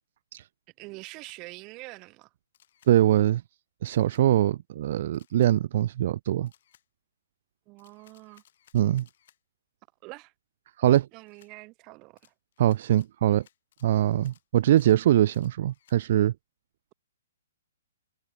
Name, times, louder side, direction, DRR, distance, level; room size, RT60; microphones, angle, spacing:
voice 1, 0.8-2.3 7.7-8.4 10.0-10.3 11.1-12.3, right 24 dB, 30° right, 2.0 m, -45 dB
Camera, 1.0-1.4 2.5-2.9 3.9-4.3 5.1-5.5 6.5-6.9 7.8-9.4 10.9-11.5 12.2-16.0, left 11 dB, 55° left, 6.4 m, -63 dB
voice 2, 2.9-3.4 3.8-6.5 8.7-9.1 10.8-11.1 12.6-13.4 13.8-16.3, right 12 dB, 50° right, 0.3 m, -22 dB
figure-of-eight pair, 125°, 0 cm